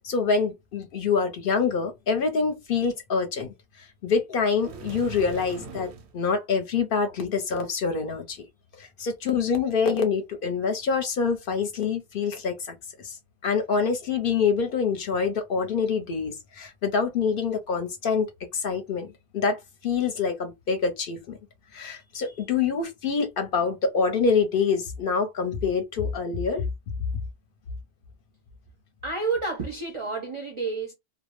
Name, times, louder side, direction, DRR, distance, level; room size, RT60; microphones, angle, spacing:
voice 1, 0.0-3.5 4.0-8.4 8.8-13.2 13.4-18.3 18.5-19.1 19.3-21.4 21.7-26.6, left 5 dB, 60° left, 0.7 m, -26 dB
sound 1, 4.6-6.1, right 4 dB, 80° right, 0.9 m, -40 dB
voice 2, 29.0-30.9, right 4 dB, 40° right, 0.4 m, -30 dB
2.2 x 2.0 x 2.9 m
omnidirectional pair, 1.1 m